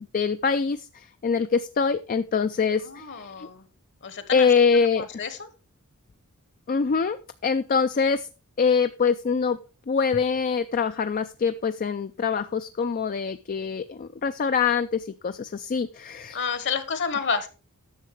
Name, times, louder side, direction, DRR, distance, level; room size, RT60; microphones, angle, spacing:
voice 1, 0.0-3.5 4.3-5.1 6.7-7.2 7.4-8.3 8.6-9.6 9.9-16.4, left 5 dB, 40° left, 10 dB, 0.4 m, -24 dB
voice 2, 2.8-3.6 4.0-4.5 5.0-5.5 16.3-17.5, left 5 dB, 55° left, 12 dB, 1.3 m, -30 dB
10.0 x 6.7 x 4.6 m, 0.33 s
head